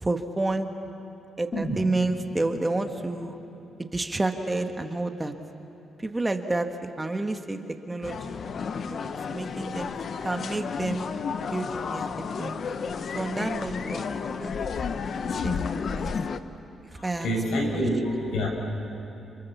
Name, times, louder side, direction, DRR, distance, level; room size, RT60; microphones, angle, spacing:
voice 1, 0.0-0.7 1.4-3.4 3.8-5.3 6.0-6.7 7.0-7.6 7.9-8.4 8.8-9.9 10.2-11.0 11.5-12.1 12.4-12.6 13.1-15.0 15.4-16.1 17.0-17.3, right 2 dB, 20° right, 5 dB, 1.7 m, -30 dB
sound 1, 1.5-5.5 5.8-5.9, right 1 dB, 40° left, 4.0 m, -37 dB
sound 2, 8.0-16.4, left 5 dB, 60° left, 1.0 m, -32 dB
voice 2, 16.9-18.5, equal, 80° left, 1 dB, 6.0 m, -27 dB
29.5 x 26.5 x 7.2 m, 2.8 s
cardioid pair, 85°, 0 cm